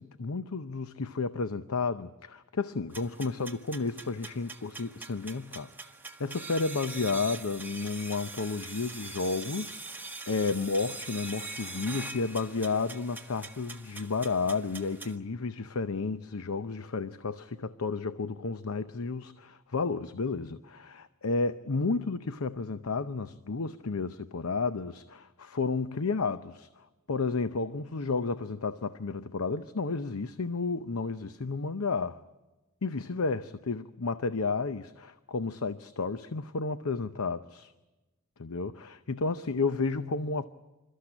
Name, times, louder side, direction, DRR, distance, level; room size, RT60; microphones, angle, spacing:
voice 1, 0.0-5.7 6.2-32.2 32.8-37.7 38.4-40.5, left 4 dB, 85° left, 0.7 m, -32 dB
sound 1, 2.9-15.2, right 3 dB, 10° right, 1.5 m, -43 dB
28.0 x 13.5 x 9.9 m
head